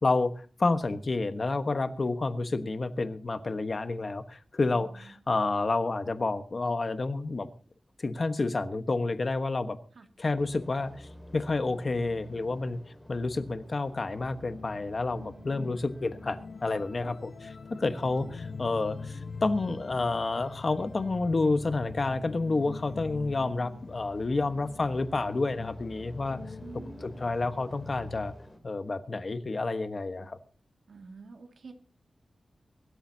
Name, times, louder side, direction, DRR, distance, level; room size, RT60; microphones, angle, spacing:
voice 1, 0.0-7.5 8.0-9.8 10.2-12.8 13.1-26.4 27.0-28.3 28.6-30.4, left 3 dB, 40° left, 9 dB, 1.2 m, -29 dB
voice 2, 4.6-5.2 9.9-10.1 15.1-15.6 17.7-17.8 26.6-27.3 30.9-31.7, right 4 dB, 70° right, 4 dB, 2.2 m, -49 dB
sound 1, 10.4-28.6, left 1 dB, 15° left, 3.2 m, -51 dB
sound 2, 13.7-28.3, left 4 dB, 60° left, 0.9 m, -44 dB
23.0 x 13.0 x 2.8 m, 0.38 s
wide cardioid pair, 125°, 0 cm